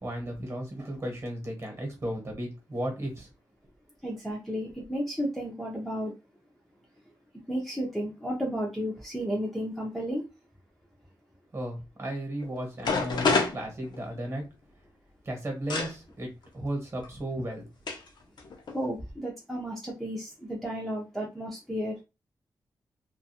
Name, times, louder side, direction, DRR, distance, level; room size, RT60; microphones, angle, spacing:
voice 1, 0.0-3.3 11.5-14.4 15.2-17.7, right 1 dB, 35° right, 2 dB, 1.0 m, -35 dB
voice 2, 4.0-6.1 7.5-10.2 18.7-22.0, equal, ahead, -3 dB, 0.5 m, -33 dB
sound 1, 12.4-12.5 12.8-14.4 15.7-15.9 17.0-17.1 17.9-18.1 18.4-18.8, left 4 dB, 65° left, 0.5 m, -27 dB
2.4 x 2.3 x 2.7 m, 0.27 s
wide cardioid pair, 165°, 8 cm